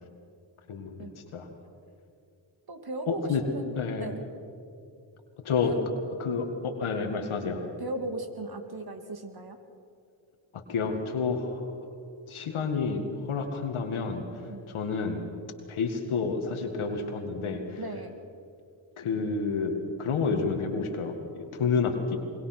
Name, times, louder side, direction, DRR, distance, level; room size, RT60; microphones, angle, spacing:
voice 1, 0.7-1.5 3.1-3.4 3.7-4.1 5.4-5.7 6.2-7.6 10.5-11.7 12.3-14.2 14.7-15.3 15.7-17.8 19.0-19.7 20.0-22.2, left 5 dB, 80° left, 4 dB, 2.1 m, -29 dB
voice 2, 2.7-4.2 5.6-5.8 7.8-9.6 14.5-14.7 17.8-18.2, right 2 dB, 50° right, 6 dB, 2.6 m, -37 dB
23.0 x 20.5 x 6.1 m, 2.5 s
supercardioid pair, 40°, 48 cm